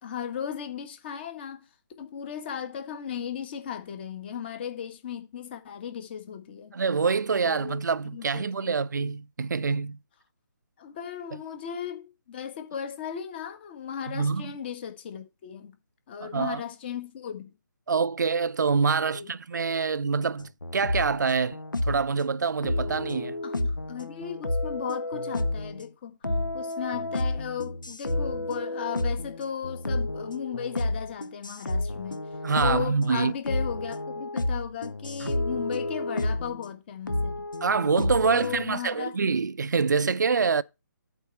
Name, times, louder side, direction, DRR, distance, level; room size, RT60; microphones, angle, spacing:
voice 1, 0.0-1.7 2.0-6.8 7.4-7.8 8.1-9.0 10.8-15.7 16.1-17.5 19.0-19.3 23.4-26.2 26.5-32.2 32.6-37.3 38.2-39.1, left 8 dB, 30° left, 1.7 m, -36 dB
voice 2, 6.7-10.0 14.1-14.5 16.2-16.6 17.9-23.4 32.4-33.3 35.2-35.4 37.6-40.6, right 5 dB, 65° right, 0.4 m, -26 dB
sound 1, 20.4-22.1 22.6-25.9 26.2-36.7 37.1-38.7, left 2 dB, 80° left, 1.0 m, -31 dB
8.2 x 4.4 x 6.6 m
figure-of-eight pair, 145°, 10 cm